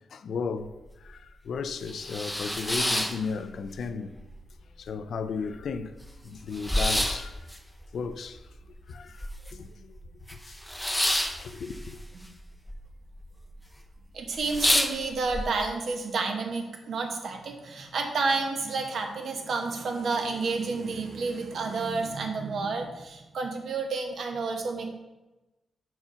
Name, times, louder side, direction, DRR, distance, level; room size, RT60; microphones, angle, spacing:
voice 1, 0.1-4.1 4.8-5.9 6.2-7.5 7.9-8.5 8.9-10.0 10.3-10.6 10.9-12.0, left 5 dB, 70° left, 0.5 m, -35 dB
sound 1, 0.6-0.7 1.1-1.2 1.7-3.9 4.2-4.9 5.3-5.4 5.5-9.7 10.0-12.8 13.0-13.6 14.0-14.1 14.4-15.4, left 1 dB, 5° left, 0.6 m, -29 dB
voice 2, 14.1-24.9, right 4 dB, 65° right, 1.2 m, -30 dB
6.5 x 4.6 x 5.6 m
cardioid pair, 115°, 0 cm